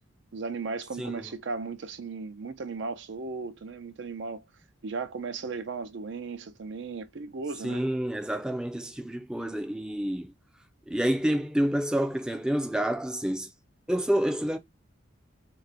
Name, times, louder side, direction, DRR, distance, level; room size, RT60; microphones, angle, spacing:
voice 1, 0.3-4.4 4.8-7.8, right 4 dB, 65° right, 0.5 m, -36 dB
voice 2, 1.0-1.3 7.6-10.3 10.9-13.5 13.9-14.6, right 1 dB, 5° right, 0.4 m, -28 dB
2.9 x 2.1 x 3.9 m
head